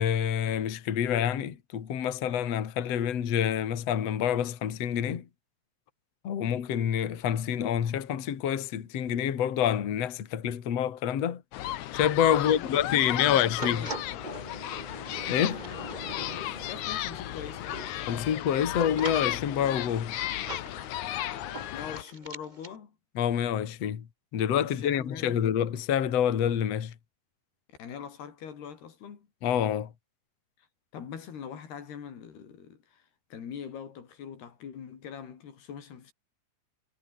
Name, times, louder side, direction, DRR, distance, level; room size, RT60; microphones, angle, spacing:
voice 1, 0.0-5.3 6.2-11.4 11.9-13.9 15.3-15.6 18.1-20.2 23.2-24.1 24.3-26.9 29.4-29.9, left 9 dB, 45° left, 2.7 m, -27 dB
sound 1, 11.5-22.0, left 13 dB, 70° left, 2.0 m, -34 dB
voice 2, 12.3-14.3 15.4-15.9 16.1-18.2 21.7-23.0 24.6-25.5 27.8-29.3 30.9-33.0 33.3-36.1, left 7 dB, 85° left, 5.5 m, -43 dB
sound 2, 13.6-22.8, right 2 dB, 15° right, 2.7 m, -43 dB
omnidirectional pair, 4.5 m